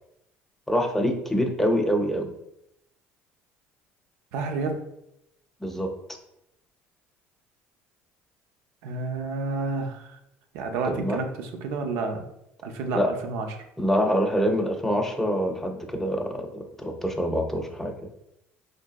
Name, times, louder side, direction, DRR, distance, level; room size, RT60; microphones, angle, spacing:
voice 1, 0.7-2.3 5.6-5.9 10.8-11.2 12.9-13.1 13.8-17.9, equal, 5° left, 4 dB, 0.4 m, -25 dB
voice 2, 4.3-4.8 8.8-10.2 10.5-12.3 12.6-13.5, right 3 dB, 85° right, 4 dB, 0.5 m, -30 dB
4.6 x 2.6 x 2.2 m, 0.81 s
cardioid pair, 135°, 5 cm